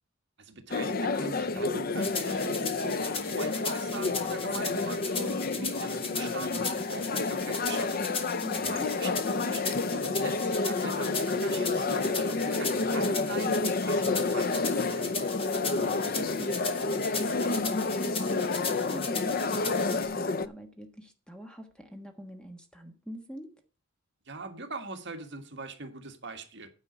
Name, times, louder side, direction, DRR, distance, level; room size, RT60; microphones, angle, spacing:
voice 1, 0.4-8.1 8.6-15.2 24.3-26.7, right 2 dB, 55° right, 1.7 m, -41 dB
sound 1, 0.7-20.5, left 3 dB, 45° left, 0.5 m, -30 dB
sound 2, 2.0-20.1, left 4 dB, 25° left, 1.6 m, -38 dB
voice 2, 8.4-8.8 15.5-19.6 19.9-23.5, equal, 5° left, 1.3 m, -44 dB
9.7 x 5.1 x 8.1 m
head